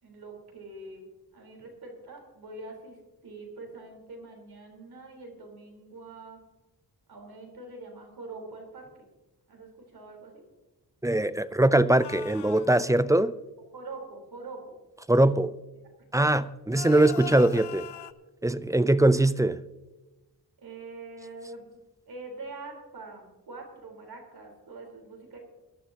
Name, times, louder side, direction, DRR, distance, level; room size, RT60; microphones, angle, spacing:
voice 1, 0.0-1.1 1.3-3.0 3.2-6.4 7.1-9.1 9.5-10.4 12.8-12.9 13.7-14.6 15.2-15.3 20.6-21.7 22.1-25.4, right 3 dB, 65° right, 4.1 m, -44 dB
voice 2, 11.0-13.3 15.1-15.5 16.1-17.9 18.4-19.6, right 1 dB, 10° right, 0.4 m, -22 dB
sound 1, 12.0-12.7 16.7-18.1, left 12 dB, 85° left, 0.7 m, -41 dB
21.5 x 11.5 x 2.9 m
wide cardioid pair, 95°, 40 cm